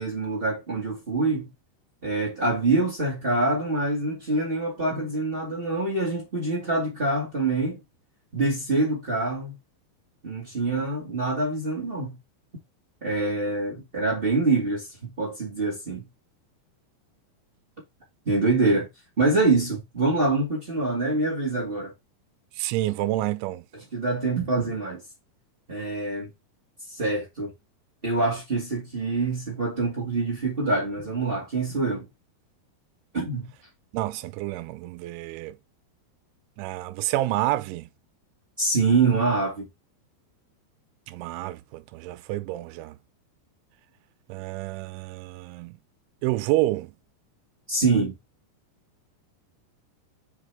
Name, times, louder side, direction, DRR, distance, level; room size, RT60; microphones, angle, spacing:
voice 1, 0.0-1.5 2.0-7.8 8.3-9.6 10.2-12.2 13.0-16.1 18.2-18.9 19.2-21.9 23.9-25.0 25.7-26.3 26.9-27.5 28.0-32.1 33.1-33.5 38.6-39.7 47.7-48.1, right 3 dB, 40° right, 0.7 m, -25 dB
voice 2, 22.5-23.7 33.9-35.6 36.6-37.9 41.1-43.0 44.3-45.8 46.2-46.9, right 16 dB, 85° right, 3.1 m, -29 dB
5.9 x 5.3 x 3.5 m
omnidirectional pair, 5.3 m